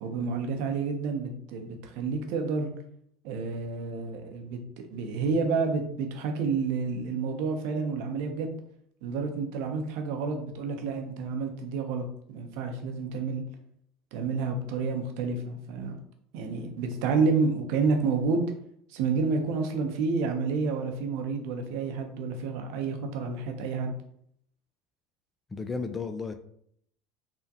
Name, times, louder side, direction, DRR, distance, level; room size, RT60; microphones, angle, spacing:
voice 1, 0.0-2.7 3.2-8.5 9.0-13.4 14.1-16.0 16.3-18.5 18.9-23.9, right 4 dB, 65° right, 5 dB, 0.6 m, -29 dB
voice 2, 25.5-26.3, left 4 dB, 20° left, 7 dB, 0.3 m, -33 dB
3.4 x 2.1 x 2.7 m, 0.67 s
hypercardioid pair, 80°, 0 cm